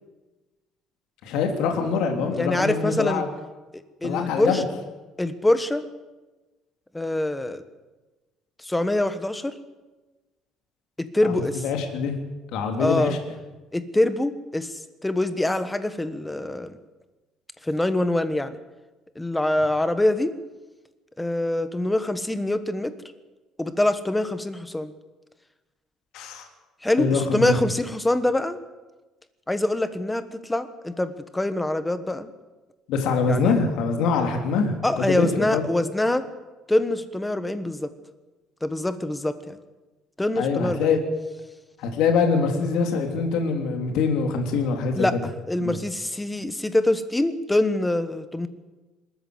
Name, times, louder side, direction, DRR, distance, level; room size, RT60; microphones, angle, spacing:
voice 1, 1.2-3.3 4.0-4.6 11.2-11.3 11.6-12.2 12.5-13.2 26.1-26.5 27.0-27.6 32.9-35.6 40.4-41.0 41.8-45.2 45.6-45.8, left 5 dB, 70° left, 4 dB, 3.3 m, -24 dB
voice 2, 2.2-3.2 3.7-4.6 5.2-5.8 6.9-7.6 8.6-9.6 11.0-11.6 12.8-13.1 13.7-16.7 17.6-18.6 19.1-20.3 21.2-22.9 23.6-24.9 26.8-28.6 29.5-32.3 33.3-33.6 34.8-36.3 36.7-37.9 38.6-39.6 40.2-41.0 44.9-48.5, left 1 dB, 5° left, 11 dB, 1.2 m, -24 dB
26.0 x 13.5 x 8.0 m, 1.2 s
cardioid pair, 165°, 0 cm